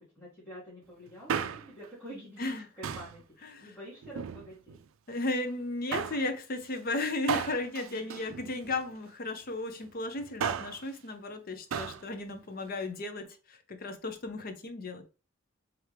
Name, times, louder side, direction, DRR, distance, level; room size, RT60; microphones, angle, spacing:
voice 1, 0.0-4.8 7.9-8.1, equal, 10° left, 2.0 m, -48 dB
Male speech man speaking, 1.1-1.9 2.8-3.2 4.0-4.8 5.9-6.3 7.3-8.9 10.2-10.8 11.7-12.0 12.3-12.4, right 7 dB, 75° right, 0.4 m, -35 dB
voice 2, 5.1-15.0, left 2 dB, 45° left, 0.6 m, -35 dB
3.5 x 3.3 x 3.2 m
head